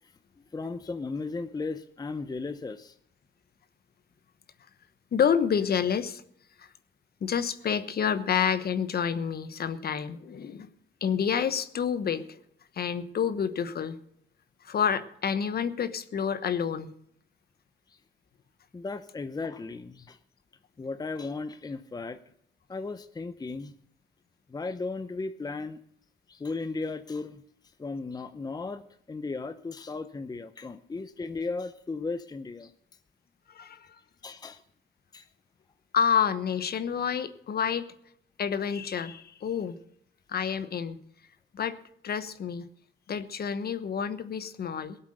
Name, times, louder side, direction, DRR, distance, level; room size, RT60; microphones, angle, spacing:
voice 1, 0.5-2.9 17.9-18.0 18.7-20.2 20.8-22.2 22.7-23.7 24.5-25.8 26.3-27.4 27.8-28.8 29.1-32.7 34.2-34.6 35.1-35.3, left 3 dB, 20° left, 11 dB, 0.7 m, -35 dB
voice 2, 5.1-6.2 6.6-6.7 7.2-10.7 11.0-12.4 12.7-14.0 14.6-16.9 33.5-33.9 35.9-37.9 38.4-39.8 40.3-41.0 41.5-41.8 42.0-42.7 43.1-45.0, left 7 dB, 50° left, 12 dB, 1.1 m, -28 dB
18.0 x 8.2 x 6.5 m, 0.65 s
cardioid pair, 90°, 20 cm